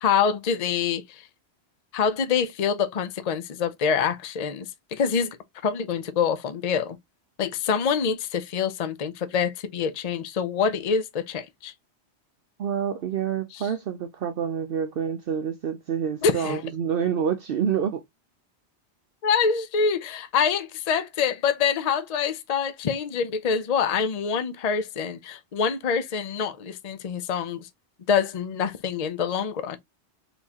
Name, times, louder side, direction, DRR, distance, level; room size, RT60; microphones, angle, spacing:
voice 1, 0.0-1.2 1.9-4.7 4.9-5.3 5.6-7.0 7.4-11.7 16.2-16.6 19.2-27.6 28.1-29.8, left 6 dB, 45° left, 0.6 m, -25 dB
voice 2, 12.6-18.0, right 8 dB, 60° right, 0.8 m, -27 dB
4.5 x 3.7 x 2.8 m
omnidirectional pair, 1.1 m